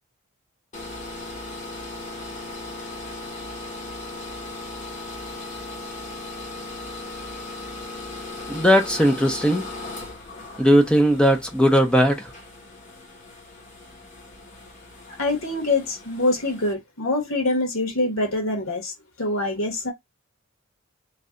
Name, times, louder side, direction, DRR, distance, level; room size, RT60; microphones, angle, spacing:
sound 1, 0.7-16.7, left 2 dB, 35° left, 1.0 m, -38 dB
voice 1, 8.5-9.6 10.6-12.3, equal, 5° left, 0.7 m, -18 dB
voice 2, 15.2-18.9 19.2-19.9, left 2 dB, 70° left, 1.6 m, -24 dB
3.3 x 2.5 x 3.7 m
head